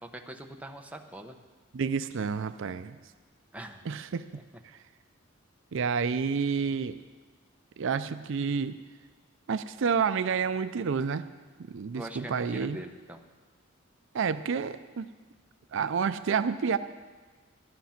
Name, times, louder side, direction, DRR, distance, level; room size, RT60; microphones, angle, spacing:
voice 1, 0.0-1.4 3.5-3.9 4.3-4.4 11.9-13.2, right 1 dB, 5° right, 3 dB, 0.9 m, -42 dB
voice 2, 1.7-3.0 3.9-4.2 4.6-4.8 5.7-7.0 7.8-8.8 9.5-11.3 11.7-12.8 14.1-15.1 15.7-16.8, right 6 dB, 65° right, 11 dB, 0.4 m, -29 dB
13.0 x 11.5 x 5.8 m, 1.4 s
head